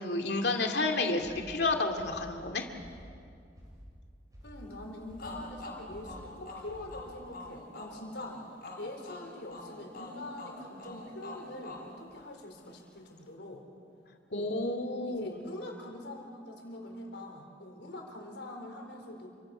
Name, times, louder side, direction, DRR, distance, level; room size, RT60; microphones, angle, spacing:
voice 1, 0.0-2.7 14.3-15.5, left 2 dB, 70° left, 4 dB, 2.4 m, -31 dB
sound 1, 1.2-7.3, equal, 20° right, 6.7 m, -51 dB
voice 2, 4.4-8.4 8.8-13.6 14.3-14.5 15.0-19.3, left 1 dB, 85° left, 2 dB, 4.5 m, -44 dB
sound 2, 5.2-12.8, left 2 dB, 55° left, 6.2 m, -46 dB
29.0 x 25.0 x 6.2 m, 2.4 s
head